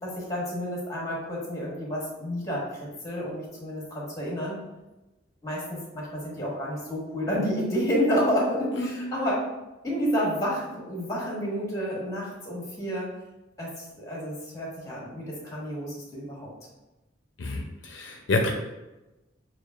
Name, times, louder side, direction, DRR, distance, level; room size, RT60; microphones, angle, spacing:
voice 1, 0.0-2.8 3.0-4.6 5.4-9.4 9.8-13.1 13.6-16.5, equal, 20° left, -4 dB, 1.2 m, -30 dB
voice 2, 17.4-18.5, left 2 dB, 70° left, 2 dB, 0.5 m, -28 dB
6.4 x 2.4 x 2.4 m, 1.0 s
head